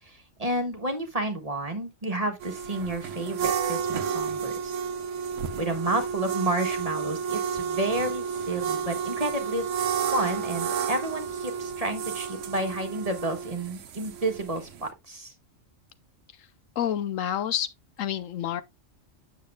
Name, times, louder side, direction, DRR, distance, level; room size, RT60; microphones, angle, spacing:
voice 1, 0.1-4.8 5.6-9.7 10.1-15.3, right 1 dB, 30° right, 1.4 m, -31 dB
sound 1, 2.4-14.9, right 7 dB, 70° right, 1.1 m, -31 dB
voice 2, 16.8-17.7 18.0-18.6, left 10 dB, 80° left, 1.0 m, -28 dB
8.4 x 7.2 x 2.3 m
omnidirectional pair, 1.4 m